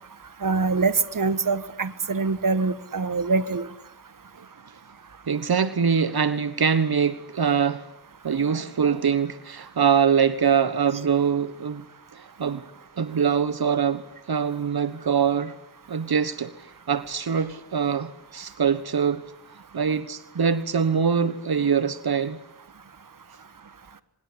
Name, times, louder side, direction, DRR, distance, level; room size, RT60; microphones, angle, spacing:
voice 1, 0.4-3.7, right 4 dB, 60° right, 14 dB, 1.6 m, -24 dB
voice 2, 5.3-7.9 8.2-11.8 12.1-12.6 13.0-14.0 14.3-15.5 15.9-19.2 19.7-22.4, right 7 dB, 80° right, 14 dB, 1.4 m, -23 dB
24.5 x 21.5 x 10.0 m, 0.72 s
wide cardioid pair, 70°, 37 cm